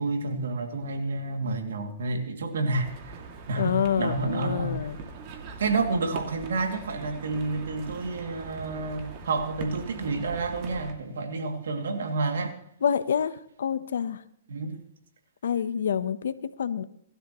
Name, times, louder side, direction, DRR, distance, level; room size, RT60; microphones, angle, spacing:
voice 1, 0.0-3.2 3.5-4.8 5.6-12.6 14.5-14.8, right 3 dB, 85° right, 4 dB, 2.6 m, -29 dB
sound 1, 2.8-10.9, right 4 dB, 45° right, 2.4 m, -42 dB
voice 2, 3.6-5.0 12.8-14.2 15.4-16.8, left 8 dB, 80° left, 13 dB, 1.0 m, -27 dB
23.5 x 12.5 x 3.1 m, 0.67 s
hypercardioid pair, 140°, 0 cm